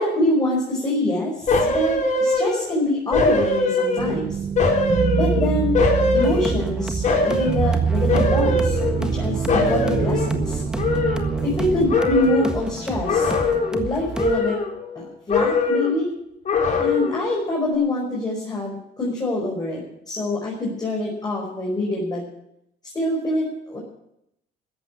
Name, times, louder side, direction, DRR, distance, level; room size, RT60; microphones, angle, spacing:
voice 1, 0.0-4.4 5.1-5.7 6.1-10.6 11.4-13.3 13.7-14.6 15.0-16.1 16.8-22.2 22.9-23.8, left 1 dB, 25° left, -2 dB, 5.6 m, -25 dB
sound 1, 1.5-2.7 3.1-4.2 4.6-6.7 7.0-7.6 8.1-9.2 9.5-11.6 11.9-12.6 13.0-13.9 14.2-15.0 15.3-16.0 16.4-17.3 17.6-17.7, left 3 dB, 45° left, 4.8 m, -22 dB
sound 2, 4.0-11.9, right 7 dB, 30° right, 0.5 m, -25 dB
sound 3, 6.1-14.4, right 1 dB, 5° right, 1.5 m, -32 dB
14.5 x 8.9 x 9.8 m, 0.77 s
cardioid pair, 110°, 17 cm